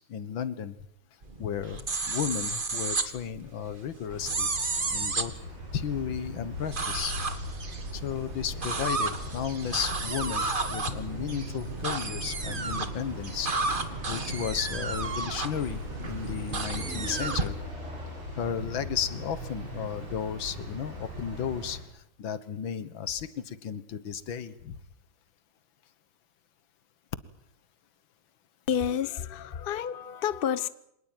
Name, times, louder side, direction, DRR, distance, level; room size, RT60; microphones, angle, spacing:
voice 1, 0.1-0.7 1.4-4.5 4.9-5.4 5.7-7.2 7.9-17.6 18.4-24.8, left 8 dB, 85° left, 2.1 m, -34 dB
sound 1, 1.2-17.5, right 3 dB, 30° right, 1.7 m, -33 dB
sound 2, 4.1-21.8, equal, 85° right, 7.3 m, -40 dB
sound 3, 16.5-20.2, equal, 5° right, 5.7 m, -46 dB
voice 2, 28.7-30.7, left 8 dB, 40° left, 0.9 m, -29 dB
25.5 x 19.0 x 9.2 m
omnidirectional pair, 2.1 m